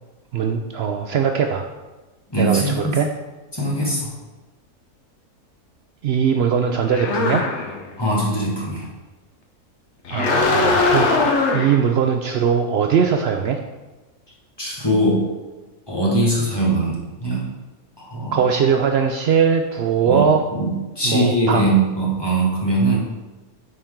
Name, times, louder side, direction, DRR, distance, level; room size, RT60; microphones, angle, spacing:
voice 1, 0.3-1.7 2.3-3.1 6.0-7.4 10.1-13.6 18.3-20.4 21.0-21.8, right 7 dB, 85° right, 4 dB, 0.5 m, -20 dB
voice 2, 2.3-3.0 3.5-4.1 8.0-8.9 14.6-15.3 15.9-17.5 18.0-18.3 20.0-23.0, right 1 dB, 15° left, -4 dB, 1.6 m, -21 dB
sound 1, 6.9-7.9 10.0-11.8, left 3 dB, 50° left, 1.1 m, -20 dB
9.6 x 4.5 x 3.7 m, 1.2 s
omnidirectional pair, 1.6 m